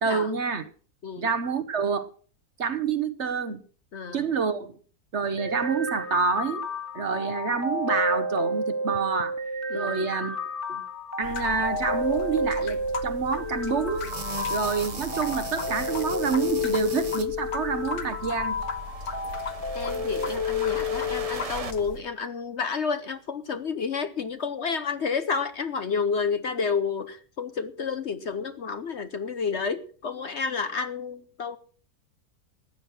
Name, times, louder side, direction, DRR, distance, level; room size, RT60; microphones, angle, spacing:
voice 1, 0.0-0.6 1.2-2.1 2.6-3.6 4.1-4.8 5.1-6.6 6.9-9.3 9.7-10.4 10.7-10.8 11.2-14.1 14.5-18.6, right 5 dB, 50° right, 1.2 m, -27 dB
voice 2, 3.9-4.2 9.7-10.1 19.7-31.6, left 5 dB, 50° left, 1.0 m, -30 dB
sound 1, 5.4-21.4, left 2 dB, 10° left, 1.7 m, -31 dB
sound 2, 11.2-22.0, left 4 dB, 70° left, 1.7 m, -38 dB
sound 3, 13.9-17.3 18.4-21.7, right 4 dB, 30° right, 0.9 m, -39 dB
15.0 x 9.8 x 6.0 m
omnidirectional pair, 1.7 m